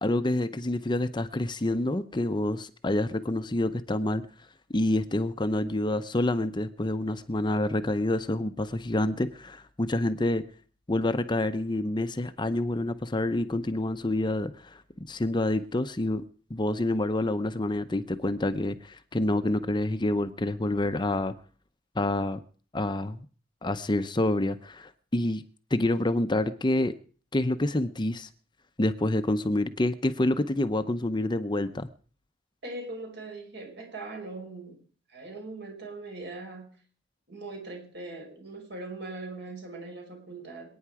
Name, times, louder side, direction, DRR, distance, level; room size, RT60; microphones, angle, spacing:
voice 1, 0.0-4.2 4.7-10.4 10.9-16.2 16.5-21.3 22.0-22.4 22.7-23.3 23.6-25.4 25.7-26.9 27.3-28.3 28.8-31.9, left 1 dB, 25° left, 10 dB, 0.7 m, -27 dB
voice 2, 32.6-34.8 35.1-36.8 37.3-40.8, right 2 dB, 60° right, 3 dB, 5.2 m, -40 dB
26.5 x 9.5 x 4.8 m, 0.40 s
head